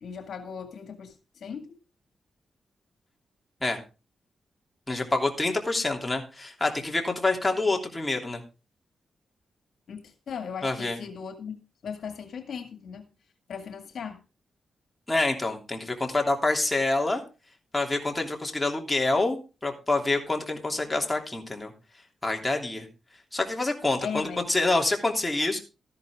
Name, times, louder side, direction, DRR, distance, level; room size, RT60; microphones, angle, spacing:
voice 1, 0.0-1.1 1.4-1.8 9.9-11.6 11.8-13.0 13.5-14.2 24.0-24.5, left 6 dB, 75° left, 7 dB, 1.9 m, -37 dB
voice 2, 4.9-8.4 10.6-11.0 15.1-17.2 17.7-21.7 22.2-22.9 23.3-25.6, left 2 dB, 15° left, 2 dB, 3.0 m, -27 dB
13.5 x 11.0 x 3.6 m, 0.30 s
cardioid pair, 80°, 0 cm